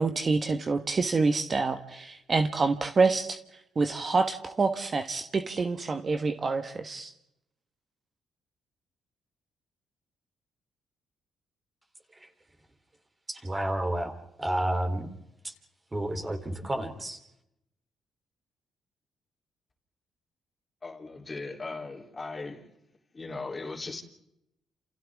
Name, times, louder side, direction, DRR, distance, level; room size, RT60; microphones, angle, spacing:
voice 1, 0.0-3.4 3.7-7.1, right 4 dB, 35° right, 1.4 m, -27 dB
voice 2, 13.3-15.1 15.4-15.5 15.9-17.2, right 1 dB, 20° right, 3.5 m, -31 dB
voice 3, 20.8-22.7 23.1-24.0, left 3 dB, 25° left, 3.5 m, -38 dB
29.5 x 28.0 x 3.7 m
cardioid pair, 90°, 0 cm